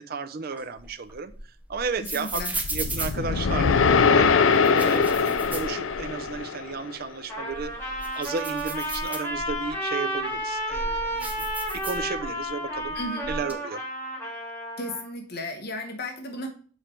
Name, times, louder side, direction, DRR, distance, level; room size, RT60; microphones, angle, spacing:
voice 1, 0.0-1.3 1.7-4.3 4.7-7.7 8.1-13.0 13.3-13.8, right 4 dB, 50° right, 10 dB, 0.5 m, -33 dB
sound 1, 0.5-4.0 4.5-6.4 6.7-6.8 7.3-9.7 10.3-12.5 12.7-13.5, right 2 dB, 10° right, 0.7 m, -36 dB
voice 2, 2.1-2.5 12.9-13.3 14.8-16.5, left 1 dB, 50° left, 3 dB, 1.2 m, -34 dB
sound 2, 2.6-6.9, left 5 dB, 75° left, 0.5 m, -22 dB
Trumpet, 7.3-15.1, equal, 15° left, 3.6 m, -32 dB
7.1 x 4.4 x 4.4 m, 0.43 s
head